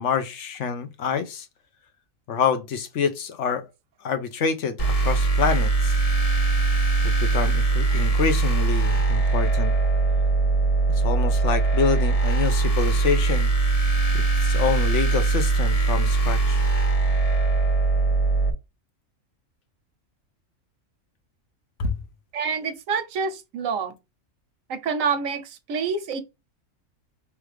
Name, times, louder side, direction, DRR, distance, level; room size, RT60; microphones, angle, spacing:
voice 1, 0.0-1.5 2.3-3.7 4.0-5.9 7.0-9.7 10.9-13.5 14.1-16.6 21.8-21.9, left 6 dB, 65° left, 1.0 m, -27 dB
sound 1, 4.8-18.5, right 3 dB, 35° left, 0.7 m, -21 dB
voice 2, 22.3-23.9 24.7-26.2, right 5 dB, 80° right, 1.1 m, -27 dB
4.8 x 3.3 x 3.2 m
omnidirectional pair, 1.4 m